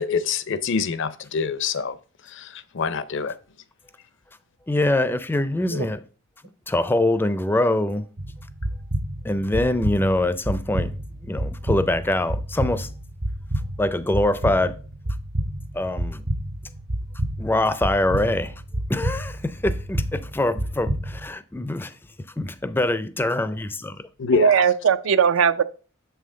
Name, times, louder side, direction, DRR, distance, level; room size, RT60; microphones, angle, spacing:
voice 1, 0.0-2.0 2.3-3.3 24.2-24.7, left 5 dB, 60° left, 0.5 m, -25 dB
voice 2, 4.7-6.0 6.7-8.1 9.2-10.9 11.2-12.9 13.8-14.8 15.7-16.2 17.4-18.5 18.9-21.9 22.4-24.0, left 1 dB, 10° left, 0.4 m, -24 dB
sound 1, 8.2-21.3, right 1 dB, 50° right, 0.8 m, -29 dB
voice 3, 24.3-25.6, right 7 dB, 75° right, 0.4 m, -19 dB
7.1 x 5.6 x 3.7 m
head